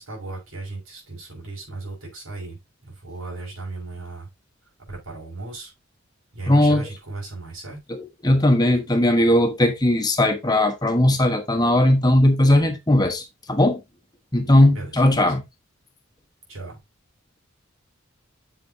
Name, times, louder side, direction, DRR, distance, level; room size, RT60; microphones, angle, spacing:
voice 1, 0.0-2.6 2.8-4.3 4.9-5.7 6.3-7.8 14.7-15.2 16.5-16.8, right 3 dB, 75° right, 5.9 m, -36 dB
voice 2, 6.5-6.8 7.9-8.0 8.2-13.8 14.3-15.4, left 1 dB, 20° left, 1.2 m, -18 dB
7.8 x 7.7 x 2.8 m
head